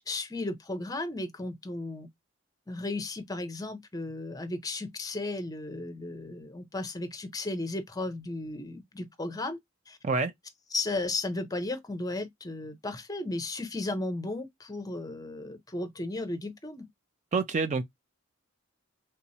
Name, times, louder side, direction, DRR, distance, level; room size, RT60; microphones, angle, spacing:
voice 1, 0.1-2.1 2.7-9.6 9.9-10.0 10.7-16.9, left 2 dB, 15° left, 0.6 m, -35 dB
voice 2, 17.3-17.8, right 4 dB, 35° right, 0.3 m, -27 dB
3.4 x 2.9 x 2.7 m
head